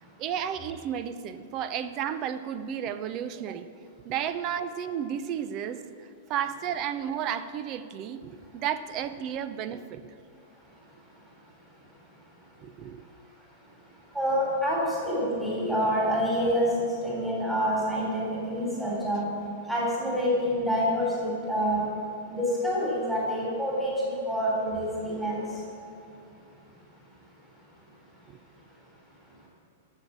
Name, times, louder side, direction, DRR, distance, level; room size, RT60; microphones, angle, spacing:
voice 1, 0.2-3.7 4.1-10.1 12.6-13.0 28.3-28.4, right 9 dB, 40° right, 12 dB, 0.7 m, -33 dB
voice 2, 14.1-19.2 19.7-21.9 22.3-25.4, equal, 10° right, -6 dB, 3.3 m, -27 dB
13.5 x 6.4 x 7.4 m, 2.5 s
hypercardioid pair, 110°, 0 cm